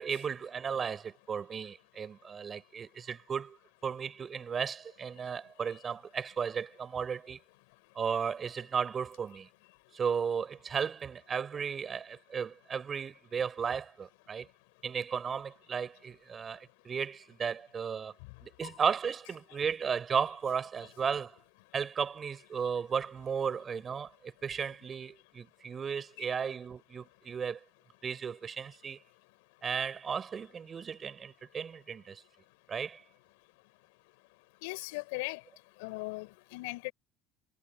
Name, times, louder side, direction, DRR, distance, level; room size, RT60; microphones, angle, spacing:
voice 1, 0.0-3.6 3.8-7.4 8.0-9.5 9.9-14.5 14.8-18.1 18.4-21.4 21.7-27.6 28.0-29.0 29.6-32.2 32.7-33.0, right 6 dB, 35° right, 3.9 m, -35 dB
voice 2, 34.6-35.4 35.8-36.9, left 26 dB, 75° left, 4.0 m, -38 dB
hypercardioid pair, 70°, 0 cm